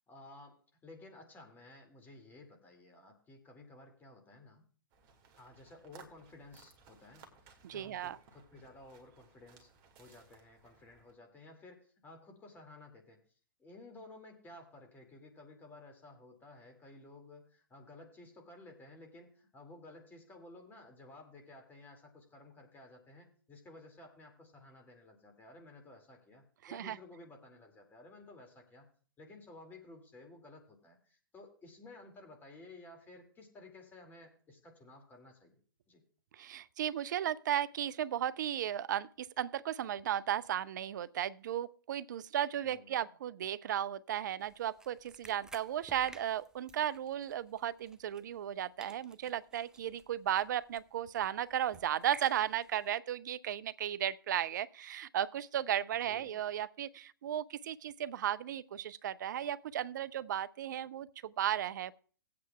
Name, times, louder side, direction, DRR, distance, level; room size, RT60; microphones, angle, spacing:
voice 1, 0.1-4.6 5.4-9.7 10.0-13.2 13.6-28.9 29.2-35.6 35.9-36.0 42.6-43.1 56.0-56.4, left 2 dB, 15° left, 2.4 m, -55 dB
sound 1, 4.9-11.1, right 5 dB, 35° right, 1.9 m, -61 dB
voice 2, 7.6-8.2 26.6-27.0 36.3-61.9, right 10 dB, 55° right, 0.5 m, -35 dB
sound 2, 44.4-48.5 48.8-52.9, right 2 dB, 5° right, 0.4 m, -56 dB
18.5 x 8.5 x 2.3 m
figure-of-eight pair, 115°, 12 cm